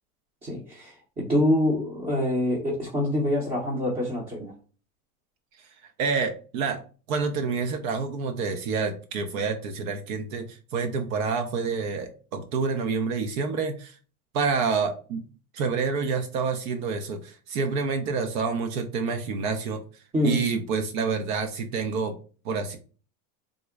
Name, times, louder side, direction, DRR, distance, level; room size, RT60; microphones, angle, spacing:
voice 1, 0.4-4.5 20.1-20.4, left 1 dB, 15° right, -4 dB, 0.7 m, -25 dB
voice 2, 6.0-6.8 7.1-14.0 14.3-15.2 15.5-19.8 20.2-22.1 22.4-22.8, right 5 dB, 70° right, 6 dB, 0.7 m, -28 dB
3.7 x 2.0 x 3.4 m, 0.38 s
supercardioid pair, 140°, 43 cm